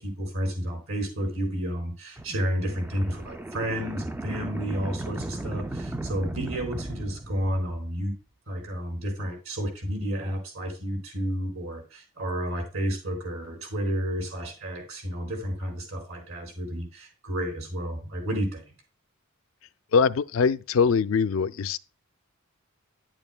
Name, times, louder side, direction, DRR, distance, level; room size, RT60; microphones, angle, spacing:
voice 1, 0.0-8.1 8.5-18.6, equal, 75° right, 4.8 m, -31 dB
sound 1, 2.2-8.0, right 1 dB, 10° right, 0.3 m, -36 dB
voice 2, 19.9-21.8, left 5 dB, 65° left, 0.4 m, -22 dB
10.5 x 8.9 x 2.2 m
head